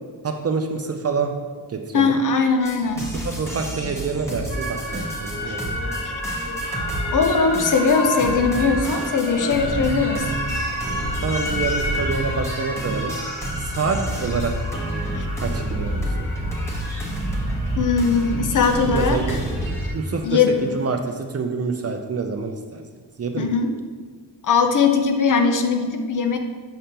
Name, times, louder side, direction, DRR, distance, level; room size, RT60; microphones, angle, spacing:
voice 1, 0.2-1.3 1.7-2.2 3.0-5.9 11.2-13.1 13.6-14.7 15.4-16.3 18.9-19.4 19.9-22.8 23.2-23.5, right 4 dB, 40° right, 4 dB, 0.4 m, -27 dB
voice 2, 1.9-3.1 6.0-6.1 7.1-10.3 15.1-15.3 17.8-19.4 20.2-20.6 23.4-23.7 24.4-26.4, left 5 dB, 50° left, 5 dB, 0.6 m, -20 dB
sound 1, 2.6-19.9, right 1 dB, 5° left, 1.0 m, -29 dB
sound 2, 4.5-20.9, left 1 dB, 70° left, 1.8 m, -32 dB
6.5 x 5.1 x 2.9 m, 1.5 s
wide cardioid pair, 145°, 42 cm